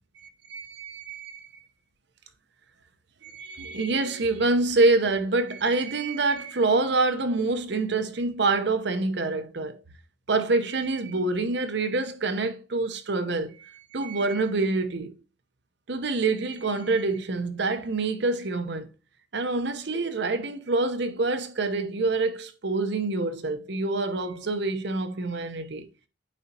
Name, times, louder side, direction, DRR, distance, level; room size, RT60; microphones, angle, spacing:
voice 1, 0.2-1.5 3.2-9.8 10.3-15.1 15.9-18.9 19.3-25.9, right 3 dB, 60° right, 0.9 m, -26 dB
9.3 x 4.2 x 2.9 m
head